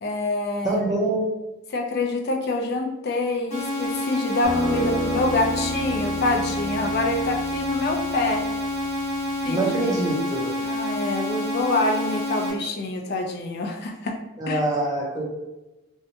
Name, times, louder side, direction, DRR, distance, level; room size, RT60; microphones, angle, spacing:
voice 1, 0.0-0.8 1.7-8.5 9.4-10.1 10.6-14.2 14.5-14.6, left 2 dB, 50° left, 2 dB, 0.4 m, -26 dB
voice 2, 0.6-1.3 9.5-10.5 14.4-15.2, right 2 dB, 15° right, -3 dB, 0.4 m, -24 dB
sound 1, 3.5-12.5, left 1 dB, 30° left, 0.9 m, -28 dB
sound 2, 4.4-9.6, equal, ahead, 0.8 m, -32 dB
2.7 x 2.1 x 2.7 m, 1.0 s
head